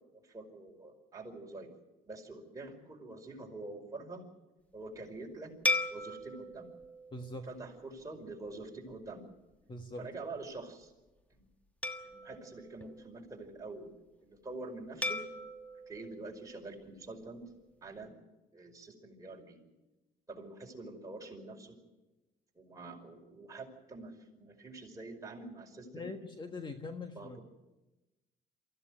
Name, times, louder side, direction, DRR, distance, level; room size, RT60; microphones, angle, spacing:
voice 1, 0.0-1.7 2.1-4.3 4.7-6.7 7.5-9.3 9.9-10.9 11.3-11.4 12.0-15.2 15.9-17.4 17.8-18.1 18.5-19.6 20.3-21.8 22.6-26.1 27.1-27.4, right 2 dB, 20° right, 0 dB, 5.3 m, -46 dB
sound 1, 5.6-8.3 8.9-9.1 11.8-13.6 15.0-17.3, left 2 dB, 10° left, 1.4 m, -38 dB
voice 2, 7.1-7.5 9.7-10.1 25.9-27.4, left 2 dB, 25° left, 6 dB, 1.5 m, -42 dB
24.0 x 15.5 x 9.4 m, 1.1 s
cardioid pair, 110°, 17 cm